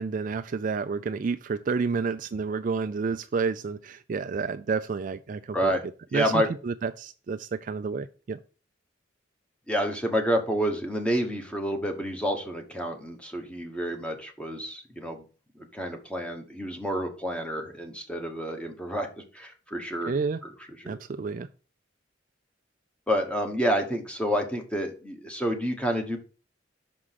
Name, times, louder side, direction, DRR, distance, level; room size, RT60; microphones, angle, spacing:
voice 1, 0.0-5.8 6.1-8.4 20.1-20.4 20.9-21.5, right 5 dB, 45° right, 10 dB, 0.3 m, -30 dB
voice 2, 6.1-6.5 9.7-15.2 15.6-20.1 20.4-20.5 20.8-21.0 23.1-26.2, equal, 5° left, 4 dB, 1.2 m, -29 dB
6.1 x 4.9 x 5.7 m, 0.36 s
head